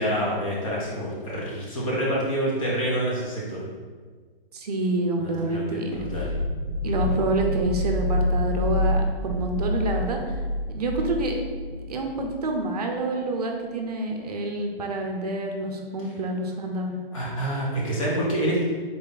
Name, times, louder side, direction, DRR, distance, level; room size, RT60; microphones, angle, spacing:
voice 1, 0.0-3.6 5.2-6.3 17.1-18.6, right 1 dB, 35° left, -5 dB, 0.9 m, -27 dB
voice 2, 4.5-6.0 6.8-10.4 10.7-11.4 11.9-16.9, right 2 dB, 40° right, 2 dB, 0.6 m, -27 dB
sound 1, 5.9-12.6, left 1 dB, 65° left, 0.8 m, -28 dB
4.0 x 3.2 x 3.9 m, 1.5 s
hypercardioid pair, 160°, 29 cm